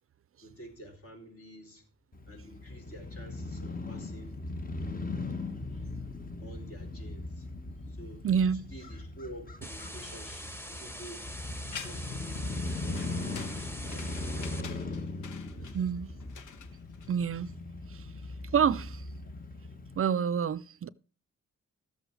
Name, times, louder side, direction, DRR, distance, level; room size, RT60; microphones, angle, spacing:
voice 1, 0.4-1.9 2.3-4.4 6.4-7.5 7.9-8.3 8.5-11.3 11.7-14.7 15.5-15.9, right 1 dB, 50° left, 4.4 m, -49 dB
Crow / Motorcycle, 2.1-20.0, left 2 dB, 30° left, 1.3 m, -39 dB
voice 2, 8.2-8.6 15.7-16.1 17.1-17.5 17.9-18.1 18.5-19.0 20.0-20.9, right 7 dB, 50° right, 0.5 m, -28 dB
sound 1, 9.6-14.6, equal, 10° left, 1.4 m, -44 dB
sound 2, 11.7-12.2 13.0-17.5, left 7 dB, 90° left, 1.1 m, -47 dB
13.5 x 8.0 x 4.6 m
cardioid pair, 65°, 30 cm